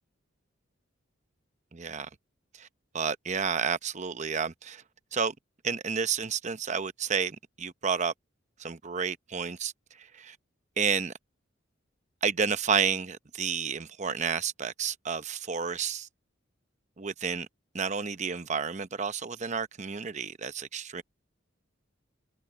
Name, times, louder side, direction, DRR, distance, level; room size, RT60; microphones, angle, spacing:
voice 1, 1.7-2.1 2.6-2.7 2.9-4.8 5.1-5.3 5.6-8.1 8.6-9.7 10.0-10.4 10.8-11.1 12.2-16.1 17.0-17.5 17.7-21.0, right 6 dB, 35° right, 0.8 m, -30 dB
head